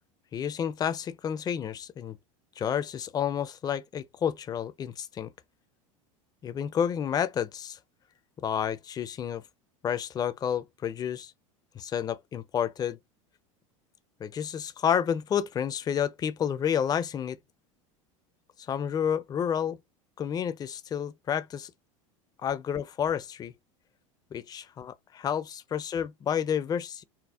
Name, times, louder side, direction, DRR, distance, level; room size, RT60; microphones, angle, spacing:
voice 1, 0.3-2.2 2.6-5.3 6.4-7.8 8.4-9.4 9.8-11.3 11.7-13.0 14.2-17.4 18.7-19.8 20.2-21.7 22.4-23.5 24.3-27.0, left 8 dB, 25° left, 0.4 m, -30 dB
4.2 x 2.0 x 2.3 m
hypercardioid pair, 95°, 17 cm